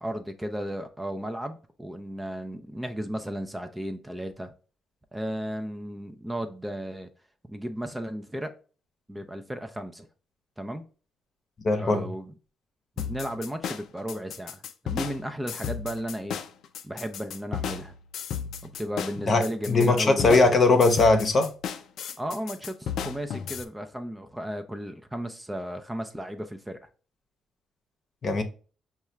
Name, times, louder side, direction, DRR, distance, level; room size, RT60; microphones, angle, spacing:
voice 1, 0.0-4.5 5.1-7.1 7.5-8.5 9.1-10.1 10.6-10.8 11.8-12.3 13.0-14.6 14.9-16.4 16.8-17.9 18.6-20.5 22.2-26.8, equal, 10° right, 0.5 m, -34 dB
voice 2, 11.6-12.1 19.3-21.5 28.2-28.4, left 3 dB, 45° left, 0.8 m, -20 dB
sound 1, 13.0-23.6, left 8 dB, 75° left, 0.4 m, -34 dB
5.4 x 2.3 x 3.1 m
cardioid pair, 90°, 0 cm